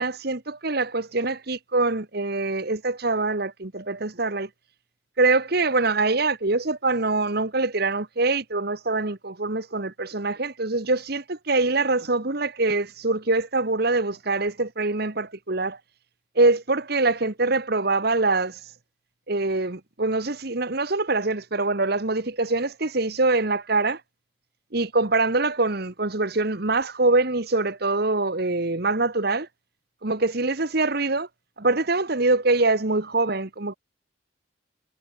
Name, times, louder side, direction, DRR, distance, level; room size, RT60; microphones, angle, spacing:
voice 1, 0.0-4.5 5.2-15.8 16.3-18.6 19.3-24.0 24.7-29.5 30.0-31.3 31.6-33.8, right 3 dB, 50° right, 1.5 m, -24 dB
head